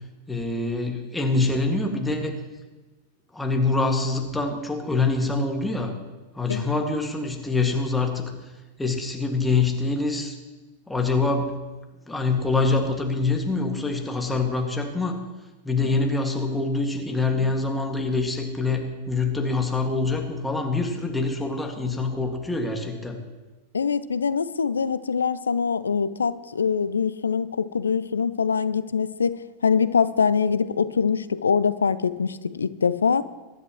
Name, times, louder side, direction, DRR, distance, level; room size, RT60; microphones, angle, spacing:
voice 1, 0.3-2.4 3.3-5.9 6.3-8.2 8.8-10.4 10.9-11.6 12.1-15.2 15.6-23.2, left 3 dB, 5° left, 2 dB, 2.0 m, -25 dB
voice 2, 23.7-29.4 29.6-33.2, left 6 dB, 70° left, 16 dB, 0.5 m, -23 dB
23.0 x 11.0 x 3.1 m, 1.2 s
figure-of-eight pair, 90°, 0 cm